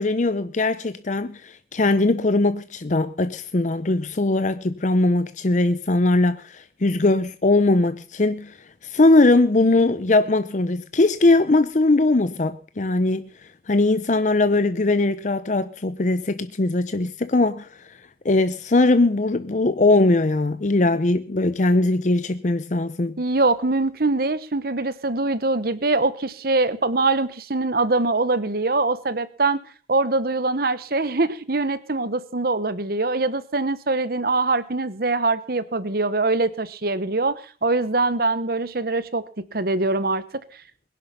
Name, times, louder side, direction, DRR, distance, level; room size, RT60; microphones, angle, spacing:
voice 1, 0.0-8.6 8.8-13.3 13.7-17.7 18.2-23.2, left 2 dB, 45° left, 0.7 m, -20 dB
voice 2, 23.2-29.6 29.9-39.2 39.5-40.2, right 3 dB, 55° right, 1.1 m, -23 dB
21.5 x 10.5 x 5.7 m
head